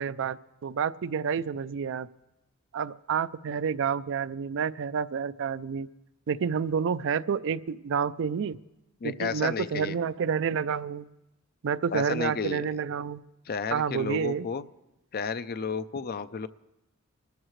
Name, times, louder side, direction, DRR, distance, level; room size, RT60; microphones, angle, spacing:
voice 1, 0.0-2.1 2.7-5.9 6.3-8.6 9.0-11.1 11.6-13.2 13.7-14.5, right 6 dB, 60° right, 15 dB, 0.4 m, -29 dB
voice 2, 9.0-10.0 11.9-12.7 13.5-14.6 15.1-16.5, left 5 dB, 45° left, 13 dB, 0.5 m, -32 dB
28.0 x 14.0 x 3.2 m, 0.99 s
head